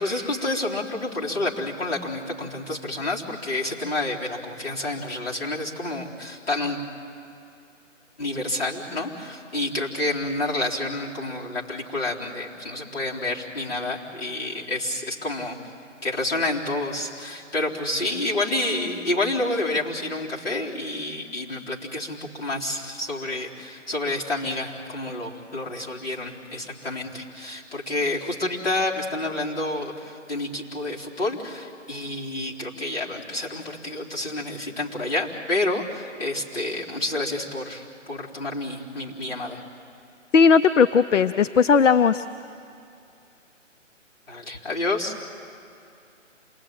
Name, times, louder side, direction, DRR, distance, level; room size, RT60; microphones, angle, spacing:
voice 1, 0.0-6.8 8.2-15.6 16.0-39.6 44.3-45.2, left 2 dB, 50° left, -5 dB, 4.0 m, -29 dB
voice 2, 40.3-42.2, left 6 dB, 70° left, 11 dB, 0.7 m, -17 dB
27.5 x 20.0 x 9.0 m, 2.6 s
hypercardioid pair, 180°, 38 cm